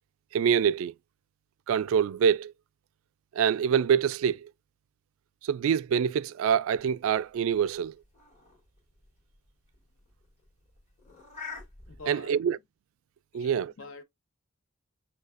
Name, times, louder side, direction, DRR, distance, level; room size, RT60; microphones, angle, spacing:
voice 1, 0.3-0.9 1.7-2.5 3.4-4.5 5.4-7.9 12.1-12.6 13.3-13.7, right 7 dB, 80° right, 0.3 m, -25 dB
sound 1, 6.8-12.1, left 4 dB, 35° left, 2.0 m, -48 dB
voice 2, 11.9-12.5 13.3-14.0, left 3 dB, 75° left, 1.0 m, -45 dB
6.4 x 2.4 x 2.4 m
head